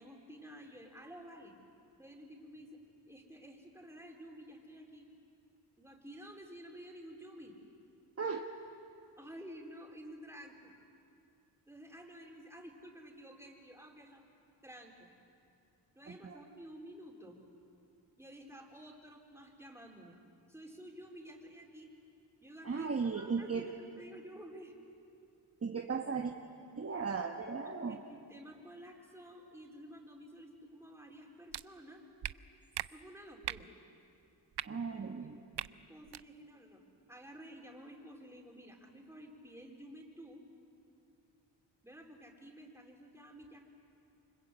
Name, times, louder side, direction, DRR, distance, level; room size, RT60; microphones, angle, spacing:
voice 1, 0.0-1.5 2.0-2.8 3.1-5.1 5.8-7.6 9.2-10.7 11.7-14.2 14.6-15.1 15.9-17.4 18.2-20.2 20.5-21.9 22.4-22.9 23.1-24.7 27.5-32.1 32.9-33.7 35.2-35.4 35.9-36.8 37.1-40.4 41.8-43.6, equal, 5° right, 0 dB, 4.4 m, -52 dB
voice 2, 8.2-8.5 16.1-16.4 22.6-23.7 25.6-26.3 26.8-28.0 34.6-35.4, right 5 dB, 35° right, 3 dB, 1.3 m, -36 dB
sound 1, 31.5-31.6 32.2-32.3 32.7-32.9 33.4-33.6 34.5-34.7 35.5-35.7 36.1-36.2, right 12 dB, 65° right, 0.6 m, -38 dB
28.5 x 25.0 x 8.2 m, 2.6 s
cardioid pair, 90°, 43 cm